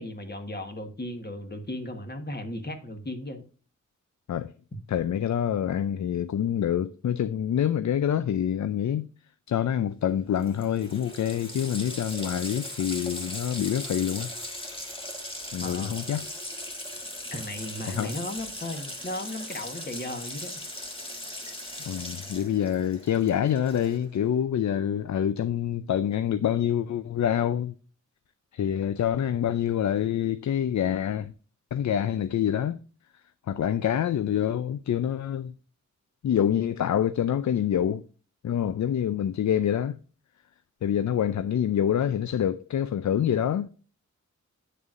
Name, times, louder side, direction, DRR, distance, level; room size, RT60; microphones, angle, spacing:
voice 1, 0.0-3.4 4.7-4.8 15.6-15.9 17.3-20.5, left 1 dB, 35° left, 1.2 m, -36 dB
voice 2, 4.9-9.1 9.5-14.3 15.5-16.2 17.9-18.1 21.9-27.7 28.5-31.3 31.7-32.8 33.5-35.5 36.2-38.1 38.4-40.0 40.8-43.7, left 9 dB, 65° left, 0.4 m, -26 dB
Water tap faucet, 10.1-10.2 10.4-24.2, left 1 dB, 20° left, 1.7 m, -39 dB
9.0 x 6.7 x 2.5 m
wide cardioid pair, 140°, 30 cm